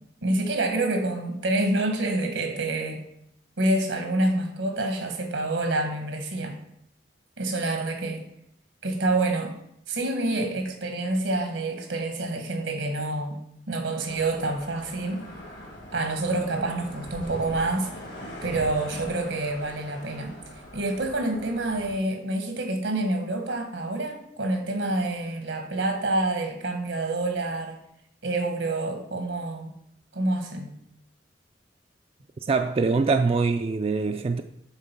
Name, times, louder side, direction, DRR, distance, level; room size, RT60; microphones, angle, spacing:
voice 1, 0.2-3.0 3.6-6.6 7.4-8.2 8.8-9.5 9.9-13.4 13.7-15.3 15.9-17.9 18.4-20.4 20.7-27.8 28.2-29.7 30.1-30.7, right 2 dB, 85° right, 1.5 m, -27 dB
sound 1, 14.1-21.9, left 1 dB, 70° left, 1.9 m, -42 dB
voice 2, 32.5-34.4, right 4 dB, 35° right, 0.3 m, -23 dB
8.9 x 3.7 x 5.8 m
head